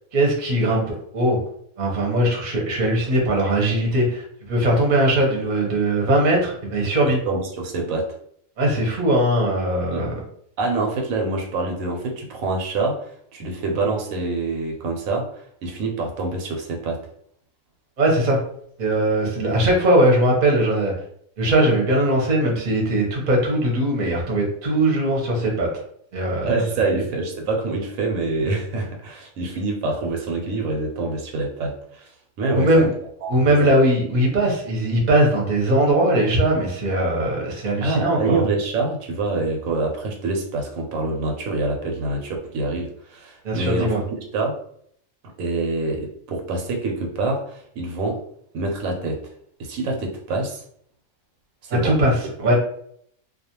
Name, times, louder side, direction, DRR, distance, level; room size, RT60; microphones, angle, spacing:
voice 1, 0.1-0.8 1.1-1.4 1.8-7.2 8.6-10.2 18.0-18.4 18.8-20.9 21.4-25.7 26.1-26.5 26.9-27.0 32.5-32.9 33.3-38.4 43.4-44.0 51.8-52.1 52.4-52.5, right 1 dB, 40° right, -1 dB, 0.7 m, -20 dB
voice 2, 7.1-8.1 9.9-10.1 10.6-17.0 26.4-32.1 32.4-32.9 33.2-33.7 37.8-44.6 45.4-48.2 48.5-49.3 49.6-50.6 51.6-52.0, right 3 dB, 90° right, 1 dB, 1.1 m, -26 dB
2.4 x 2.2 x 2.8 m, 0.66 s
omnidirectional pair, 1.4 m